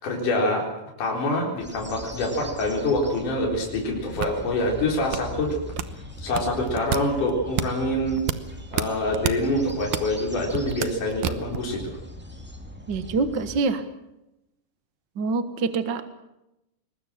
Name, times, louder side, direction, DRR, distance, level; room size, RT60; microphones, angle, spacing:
voice 1, 0.0-0.7 1.0-5.6 6.2-8.2 8.7-12.0, left 1 dB, 65° left, -1 dB, 5.4 m, -25 dB
sound 1, 1.6-13.6, left 1 dB, 5° right, 1.4 m, -40 dB
sound 2, 3.7-11.7, right 10 dB, 75° right, 2.6 m, -31 dB
voice 2, 12.9-13.8 15.2-16.0, right 4 dB, 45° right, 10 dB, 1.6 m, -25 dB
22.5 x 20.5 x 7.5 m, 0.90 s
omnidirectional pair, 3.9 m